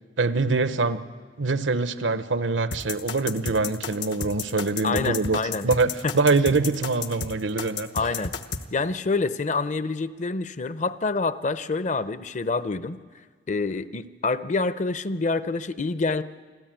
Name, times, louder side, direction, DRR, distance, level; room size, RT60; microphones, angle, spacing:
voice 1, 0.2-1.0 1.4-5.4 5.6-7.9, right 3 dB, 85° right, 12 dB, 0.9 m, -24 dB
sound 1, 2.7-8.6, left 5 dB, 75° left, 1.1 m, -32 dB
voice 2, 4.8-5.6 6.0-6.1 7.9-8.3 8.7-13.0 13.5-16.2, left 3 dB, 40° left, 14 dB, 0.6 m, -27 dB
27.0 x 14.0 x 9.0 m, 1.5 s
head